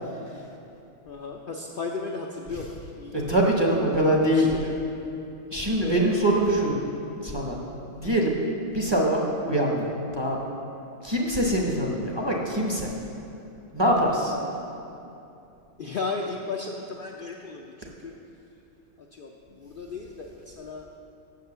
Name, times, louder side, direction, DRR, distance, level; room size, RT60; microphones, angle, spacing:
voice 1, 1.1-4.7 5.8-6.2 14.3-14.6 15.8-18.1 19.0-20.9, left 4 dB, 55° left, 0 dB, 0.6 m, -35 dB
voice 2, 3.1-4.5 5.5-6.8 7.2-7.6 7.9-8.4 8.7-10.4 11.0-12.9 13.7-14.3, right 1 dB, 25° right, -2 dB, 0.9 m, -23 dB
7.8 x 6.4 x 6.7 m, 2.7 s
omnidirectional pair, 1.4 m